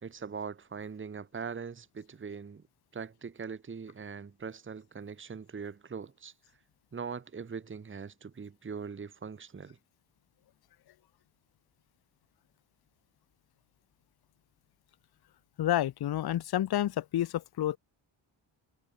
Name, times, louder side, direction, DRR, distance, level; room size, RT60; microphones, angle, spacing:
voice 1, 0.0-2.6 2.9-6.3 6.9-9.8, right 6 dB, 25° right, 1.3 m, -41 dB
voice 2, 15.6-17.8, left 12 dB, 55° left, 0.8 m, -29 dB
wide cardioid pair, 130°, 47 cm